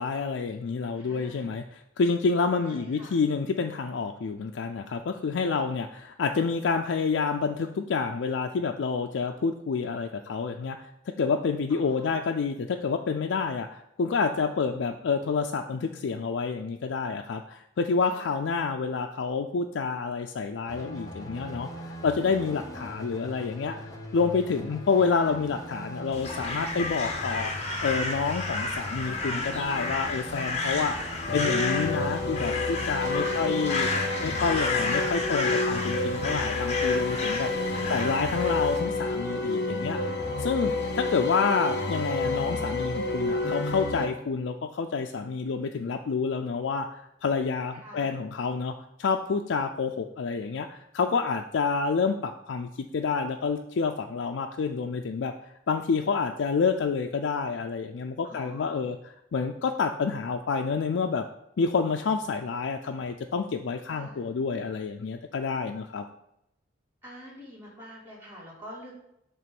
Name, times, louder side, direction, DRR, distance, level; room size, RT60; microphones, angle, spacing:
voice 1, 0.0-33.9 34.2-40.1 40.4-55.3 55.7-59.0 59.3-61.3 61.6-66.0, left 5 dB, 85° left, 4 dB, 0.4 m, -28 dB
voice 2, 0.9-1.5 2.6-3.2 11.7-12.2 18.0-18.4 24.9-25.3 33.3-33.7 37.7-38.1 47.7-48.2 58.2-58.9 63.9-64.3 67.0-68.9, equal, 15° right, -7 dB, 2.3 m, -47 dB
sound 1, 20.7-32.1, equal, 20° left, 0.8 m, -40 dB
Crow, 26.1-38.8, left 3 dB, 35° left, 1.1 m, -32 dB
sound 2, 31.3-44.1, left 3 dB, 60° left, 0.9 m, -29 dB
7.6 x 3.1 x 5.9 m, 0.80 s
head